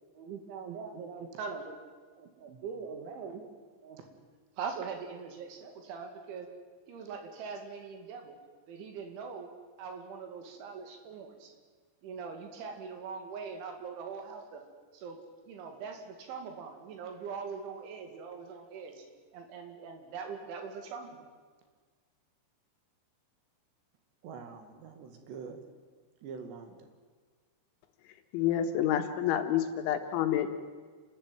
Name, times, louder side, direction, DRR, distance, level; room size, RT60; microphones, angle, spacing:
voice 1, 0.2-1.8 2.2-3.4 3.8-4.0 4.6-6.5 6.9-8.4 8.7-9.5 9.8-11.5 12.0-14.6 14.9-15.2 15.5-19.0 19.3-21.3, right 5 dB, 85° right, 5 dB, 4.9 m, -42 dB
voice 2, 24.2-25.6 26.2-26.9, right 5 dB, 70° right, 6 dB, 4.1 m, -45 dB
voice 3, 28.3-30.6, left 10 dB, 90° left, 7 dB, 3.8 m, -28 dB
29.0 x 13.0 x 9.2 m, 1.5 s
omnidirectional pair, 5.3 m